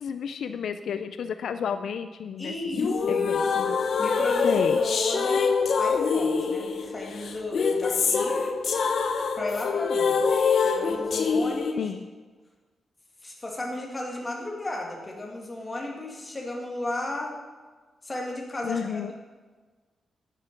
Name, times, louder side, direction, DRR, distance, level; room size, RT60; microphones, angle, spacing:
voice 1, 0.0-2.5 3.1-3.8 4.4-4.8 11.8-12.1 18.6-19.1, left 7 dB, 70° left, 10 dB, 0.4 m, -31 dB
voice 2, 2.4-3.7 4.0-5.5 5.8-8.5 9.4-10.4 10.6-11.9 13.2-17.3 18.0-18.8, left 2 dB, 15° left, -1 dB, 2.0 m, -34 dB
sound 1, 2.7-11.7, left 5 dB, 55° left, 0.9 m, -25 dB
9.6 x 9.1 x 5.9 m, 1.4 s
wide cardioid pair, 175°, 0 cm